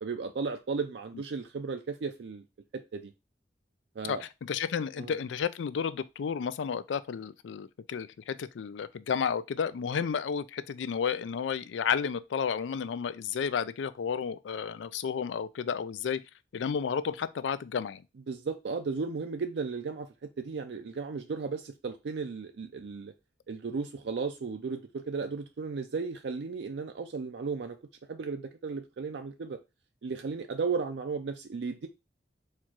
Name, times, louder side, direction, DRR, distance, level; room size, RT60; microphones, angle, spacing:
voice 1, 0.0-2.4 2.7-3.1 4.0-4.2 5.0-5.2 18.3-20.1 20.4-23.1 23.5-27.8 28.1-29.6 30.0-31.9, right 4 dB, 70° right, 0.4 m, -35 dB
voice 2, 4.0-16.2 16.5-18.0, left 7 dB, 90° left, 0.4 m, -32 dB
4.4 x 2.4 x 4.5 m
head